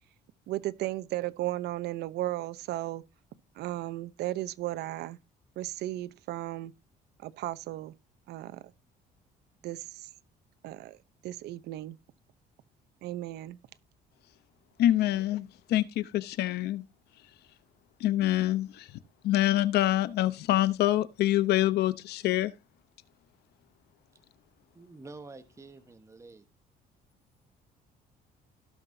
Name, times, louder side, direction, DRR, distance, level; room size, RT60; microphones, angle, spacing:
voice 1, 0.5-3.0 3.6-5.2 5.6-6.7 7.2-7.9 8.3-8.6 9.6-10.1 10.6-11.0 11.2-12.0 13.0-13.6, right 15 dB, 75° right, 0.9 m, -35 dB
voice 2, 14.8-16.9 17.2-17.3 18.0-22.5, left 14 dB, 75° left, 0.9 m, -26 dB
voice 3, 24.7-26.4, right 3 dB, 15° right, 1.3 m, -48 dB
17.5 x 5.9 x 2.8 m
cardioid pair, 110°, 17 cm